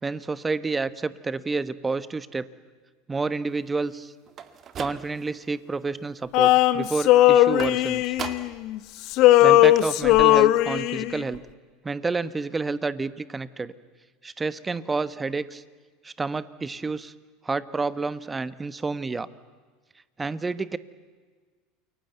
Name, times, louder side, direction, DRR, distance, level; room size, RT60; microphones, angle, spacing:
voice 1, 0.0-2.5 3.1-4.1 4.8-8.1 9.4-11.4 11.8-13.7 14.2-15.6 16.0-17.1 17.4-19.3 20.2-20.8, right 3 dB, 20° right, 15 dB, 1.2 m, -29 dB
sound 1, 4.3-5.4 5.8-6.3 7.6-8.7 9.0-9.1 9.4-9.5 9.8-9.9, right 8 dB, 40° right, 2.0 m, -38 dB
Male singing, 6.3-8.8 9.1-11.2, left 15 dB, 55° left, 1.0 m, -18 dB
29.0 x 22.5 x 8.2 m, 1.5 s
hypercardioid pair, 80°, 0 cm